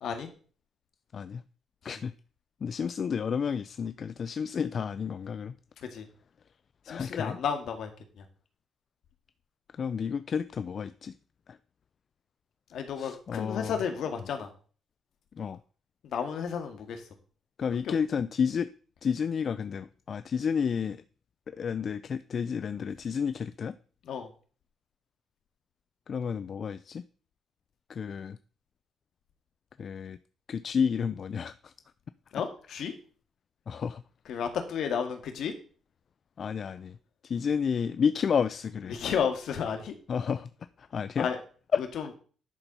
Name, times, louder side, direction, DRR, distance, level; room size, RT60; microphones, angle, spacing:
voice 1, 1.8-2.1 2.6-5.5 6.9-7.4 9.7-11.1 11.5-11.6 13.0-13.8 15.4-15.6 17.6-18.7 19.0-21.0 21.5-23.8 26.1-27.0 27.9-28.4 29.8-30.2 30.5-31.7 33.7-34.0 36.4-37.0 37.2-39.0 40.1-40.5 40.8-41.3 41.7-41.8, left 6 dB, 50° left, 0.4 m, -31 dB
voice 2, 6.9-7.9 8.2-8.3 12.7-14.5 16.1-17.0 24.1-24.3 32.3-32.9 34.3-35.5 38.9-39.9 41.2-41.4 42.0-42.1, left 7 dB, 70° left, 1.8 m, -32 dB
10.5 x 4.4 x 5.4 m
cardioid pair, 90°, 0 cm